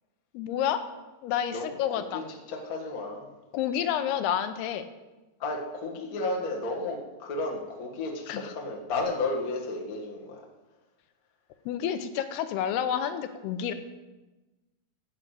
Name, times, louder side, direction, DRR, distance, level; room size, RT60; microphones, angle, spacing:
voice 1, 0.3-0.8 1.2-2.3 3.5-4.8 8.3-8.5 11.7-13.7, left 9 dB, 80° left, 10 dB, 2.7 m, -29 dB
voice 2, 1.5-2.2 2.5-3.3 5.4-10.4, left 2 dB, 60° left, -1 dB, 0.9 m, -33 dB
11.0 x 6.6 x 8.3 m, 1.1 s
omnidirectional pair, 4.7 m